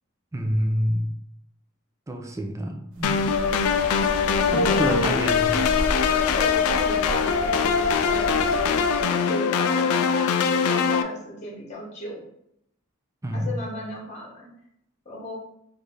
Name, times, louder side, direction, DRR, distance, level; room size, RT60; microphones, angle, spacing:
voice 1, 0.3-1.1 2.1-3.3 4.5-5.5 13.2-13.5, equal, 15° right, 3 dB, 0.4 m, -27 dB
Breathing, 2.9-9.0, equal, 70° right, 0.7 m, -34 dB
sound 1, 3.0-11.0, left 6 dB, 90° left, 0.3 m, -22 dB
voice 2, 4.3-5.2 6.1-8.7 9.0-12.2 13.3-14.5 15.0-15.4, left 1 dB, 35° left, -3 dB, 1.1 m, -34 dB
3.2 x 2.6 x 3.7 m, 0.77 s
head